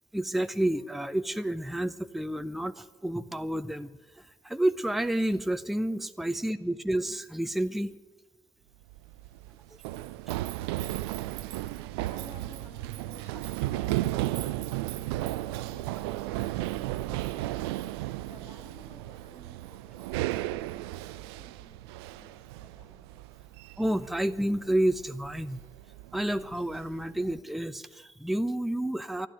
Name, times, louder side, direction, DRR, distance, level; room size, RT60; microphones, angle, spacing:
voice 1, 0.1-3.9 4.4-7.9 23.8-25.6 26.1-29.3, right 1 dB, ahead, 11 dB, 0.6 m, -30 dB
Run, 8.8-27.4, right 16 dB, 65° right, 0.4 m, -35 dB
voice 2, 11.7-21.8 22.1-23.0 23.4-23.5, left 1 dB, 45° left, -1 dB, 5.9 m, -54 dB
12.0 x 11.5 x 9.4 m, 1.3 s
figure-of-eight pair, 50°, 14 cm